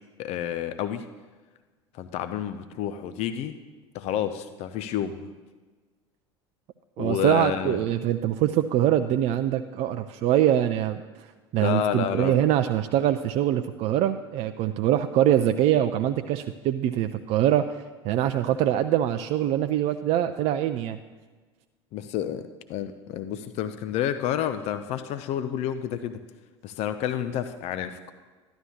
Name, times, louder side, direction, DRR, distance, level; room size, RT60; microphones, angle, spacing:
voice 1, 0.2-1.0 1.9-3.5 3.9-5.3 7.0-7.8 11.5-12.4 21.9-26.2 26.6-28.1, left 10 dB, 45° left, 10 dB, 0.5 m, -30 dB
voice 2, 7.0-11.3 11.5-21.0, right 11 dB, 45° right, 9 dB, 0.4 m, -24 dB
12.5 x 11.5 x 2.8 m, 1.3 s
figure-of-eight pair, 75°, 15 cm